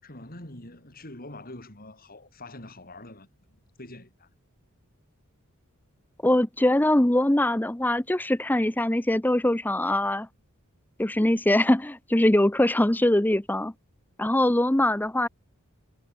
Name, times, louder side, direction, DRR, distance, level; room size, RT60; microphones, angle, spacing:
voice 1, 0.0-4.3, left 1 dB, 40° left, 5.7 m, -45 dB
voice 2, 6.2-10.3 11.0-13.7 14.2-15.3, left 1 dB, 10° left, 0.7 m, -22 dB
head